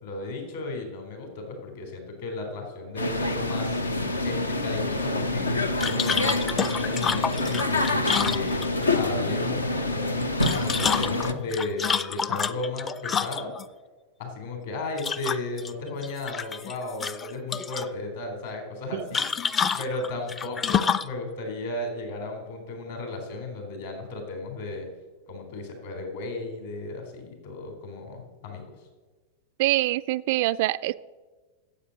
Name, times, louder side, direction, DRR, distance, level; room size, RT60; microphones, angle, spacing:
voice 1, 0.0-3.8 4.2-13.5 14.2-19.2 19.7-24.9 25.3-28.6, left 2 dB, 60° left, 3 dB, 3.7 m, -34 dB
sound 1, 3.0-11.3, left 2 dB, 80° left, 0.8 m, -27 dB
sound 2, 5.8-8.9 10.2-13.6 15.0-15.7 16.0-16.7 17.0-17.9 19.1-21.1, left 6 dB, 20° left, 0.5 m, -28 dB
voice 2, 29.6-30.9, right 17 dB, 50° right, 16 dB, 0.3 m, -24 dB
9.9 x 7.9 x 7.9 m, 1.3 s
figure-of-eight pair, 90°, 0 cm